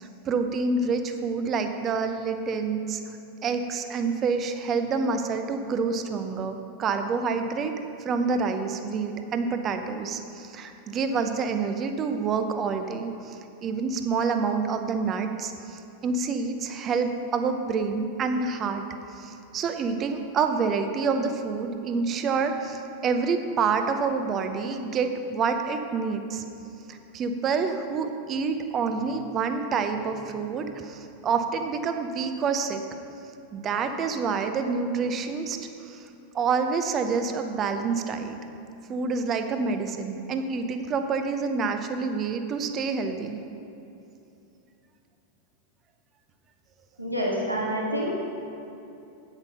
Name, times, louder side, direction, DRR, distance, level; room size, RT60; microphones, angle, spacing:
voice 1, 0.0-3.2 3.4-7.7 8.0-18.9 19.1-26.4 26.9-32.8 33.5-36.1 36.3-38.4 38.9-43.4, right 5 dB, 30° right, 7 dB, 0.8 m, -28 dB
voice 2, 47.0-48.3, equal, 85° right, -3 dB, 1.6 m, -27 dB
8.8 x 8.2 x 5.5 m, 2.8 s
figure-of-eight pair, 90°, 0 cm